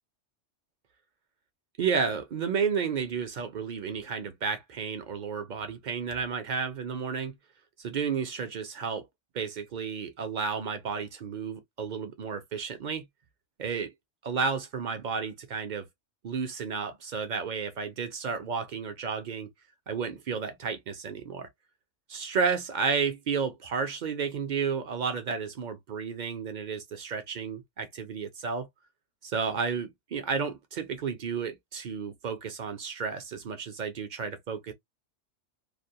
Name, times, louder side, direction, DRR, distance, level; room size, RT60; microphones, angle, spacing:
voice 1, 1.8-7.3 7.8-9.1 9.3-13.0 13.6-13.9 14.2-15.9 16.2-19.5 19.9-21.5 22.1-28.7 29.2-34.7, right 5 dB, 55° right, 0.5 m, -32 dB
2.5 x 2.1 x 2.6 m
omnidirectional pair, 1.2 m